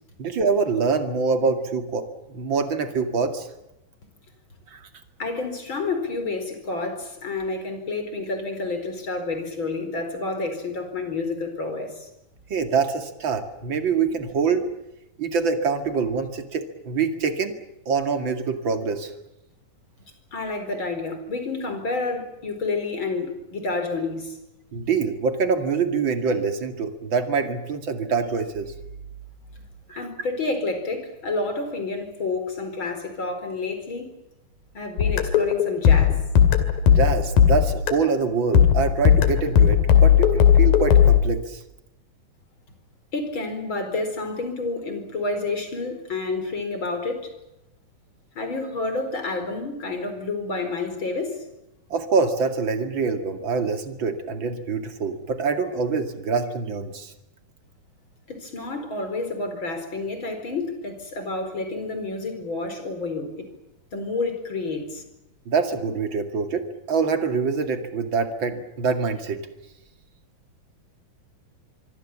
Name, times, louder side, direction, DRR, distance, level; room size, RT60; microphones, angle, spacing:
voice 1, 0.2-3.5 4.7-4.8 12.5-14.6 15.2-17.6 17.9-19.1 24.7-28.7 29.9-30.0 36.9-41.6 51.9-57.1 65.5-69.4, right 5 dB, 35° right, 6 dB, 2.5 m, -25 dB
voice 2, 5.2-12.1 20.3-24.4 29.9-34.1 34.7-36.2 43.1-47.3 48.3-51.4 58.3-63.5 63.9-65.0, left 3 dB, 30° left, 7 dB, 5.1 m, -29 dB
sound 1, 35.0-38.1 38.5-41.2, left 9 dB, 70° left, 4.0 m, -16 dB
25.0 x 25.0 x 7.5 m, 0.90 s
omnidirectional pair, 4.3 m